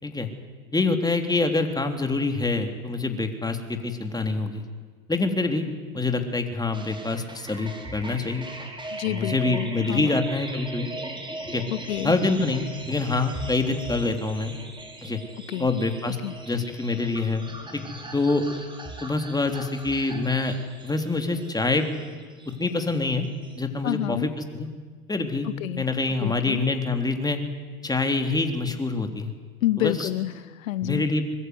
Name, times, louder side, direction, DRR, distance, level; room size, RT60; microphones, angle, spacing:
voice 1, 0.7-4.6 5.1-5.7 5.9-8.5 9.1-10.9 11.5-11.6 12.0-14.6 15.0-15.2 15.6-16.2 16.4-17.4 17.7-17.8 18.1-18.4 19.0-20.6 20.8-21.9 22.5-23.3 23.6-24.7 25.1-25.5 25.8-27.4 27.8-29.3 29.8-30.1 30.8-31.3, left 3 dB, 10° left, 5 dB, 3.5 m, -25 dB
sound 1, 6.7-23.6, right 2 dB, 10° right, 5.0 m, -39 dB
voice 2, 8.9-10.2 11.7-12.2 15.5-15.7 16.2-16.3 23.8-24.3 25.4-25.8 26.2-26.6 29.6-31.1, left 14 dB, 70° left, 16 dB, 0.9 m, -29 dB
24.5 x 21.5 x 9.7 m, 1.5 s
hypercardioid pair, 90°, 41 cm